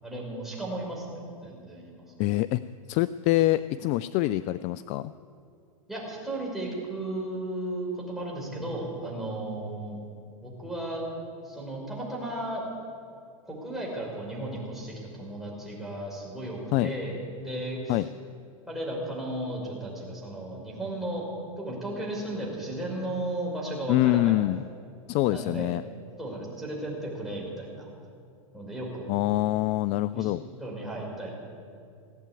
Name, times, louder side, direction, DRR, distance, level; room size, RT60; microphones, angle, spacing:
voice 1, 0.0-2.0 5.9-10.0 10.4-11.0 11.4-12.6 13.4-18.1 18.7-21.2 21.6-24.4 25.3-25.7 26.2-27.9 28.5-29.1 30.1-30.3 30.6-31.3, right 1 dB, ahead, -4 dB, 5.3 m, -35 dB
voice 2, 2.2-2.6 2.9-5.1 16.7-16.9 17.9-18.1 23.9-24.6 25.1-25.8 29.1-30.4, left 16 dB, 40° left, 16 dB, 0.3 m, -25 dB
17.5 x 8.8 x 9.0 m, 2.4 s
hypercardioid pair, 115°, 18 cm